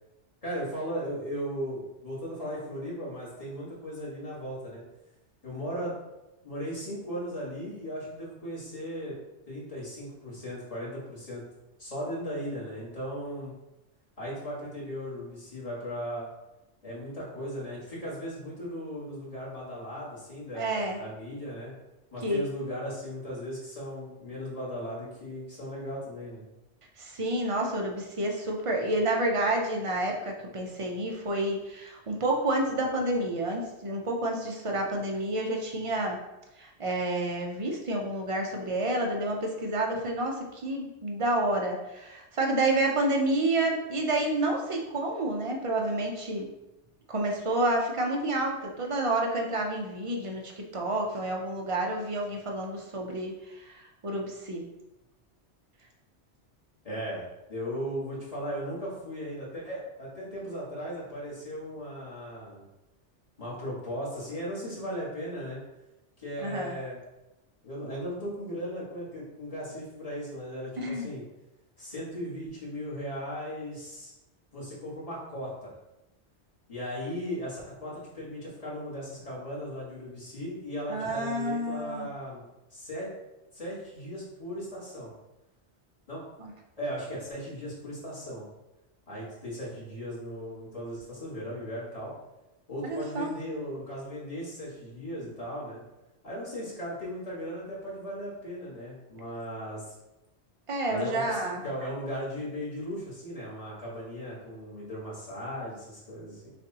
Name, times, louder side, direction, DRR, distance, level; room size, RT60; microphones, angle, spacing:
voice 1, 0.4-4.8 5.4-5.9 6.4-9.2 9.5-11.4 11.8-13.5 14.2-16.3 16.8-21.7 22.1-26.4 56.8-62.6 63.4-65.6 66.2-67.0 67.6-71.2 71.8-74.1 74.5-75.7 76.7-83.1 83.5-85.1 86.1-86.2 86.8-88.4 89.1-92.1 92.7-95.8 96.2-99.9 100.9-106.5, equal, 30° left, -8 dB, 1.6 m, -37 dB
voice 2, 20.5-21.0 22.2-22.4 27.0-36.2 36.6-46.5 47.1-54.6 66.4-66.7 70.8-71.1 80.9-82.1 86.4-86.5 92.8-93.3 100.7-101.6, right 1 dB, 40° right, 1 dB, 0.5 m, -29 dB
6.3 x 2.5 x 2.8 m, 0.97 s
omnidirectional pair, 1.2 m